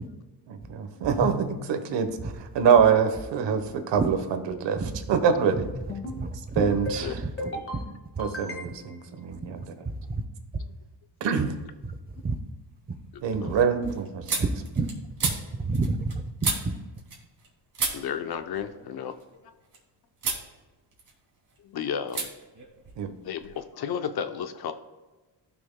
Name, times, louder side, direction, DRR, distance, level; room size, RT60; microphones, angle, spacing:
voice 1, 0.5-5.7 6.5-7.6 8.2-9.6 11.2-11.5 13.2-14.5 23.0-23.1, right 7 dB, 70° right, 8 dB, 1.1 m, -25 dB
Drum, 1.2-2.9, equal, 15° left, 0.9 m, -37 dB
sound 1, 5.7-6.2 6.6-7.0 7.4-7.8 8.2-9.0, left 1 dB, 30° left, 1.7 m, -35 dB
sound 2, 11.5-12.0 12.4-17.5 17.7-19.8 20.2-20.5 20.8-21.6 22.1-22.3 22.5-23.6, right 4 dB, 45° right, 2.3 m, -34 dB
voice 2, 15.7-16.7, right 3 dB, 20° right, 8 dB, 0.7 m, -27 dB
voice 3, 17.9-19.1 21.6-22.3 23.2-24.7, left 8 dB, 55° left, 9 dB, 0.8 m, -33 dB
15.0 x 6.0 x 2.2 m, 1.2 s
cardioid pair, 105°, 44 cm